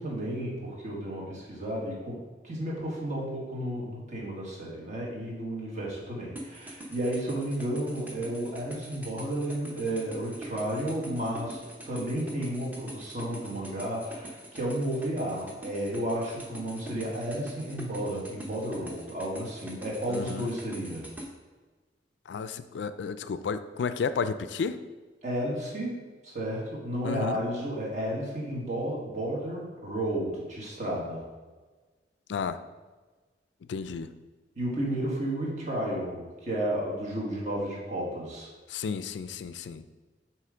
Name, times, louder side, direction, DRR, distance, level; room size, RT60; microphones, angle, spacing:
voice 1, 0.0-21.1 25.2-26.0 26.2-31.2 34.5-38.5, right 1 dB, 45° right, -4 dB, 1.7 m, -32 dB
sound 1, 6.4-21.3, right 1 dB, 10° right, 0.8 m, -43 dB
voice 2, 20.1-20.5 22.3-24.8 27.0-27.4 32.3-32.6 33.7-34.1 38.7-39.8, left 5 dB, 80° left, 12 dB, 0.3 m, -32 dB
7.6 x 3.1 x 4.9 m, 1.3 s
head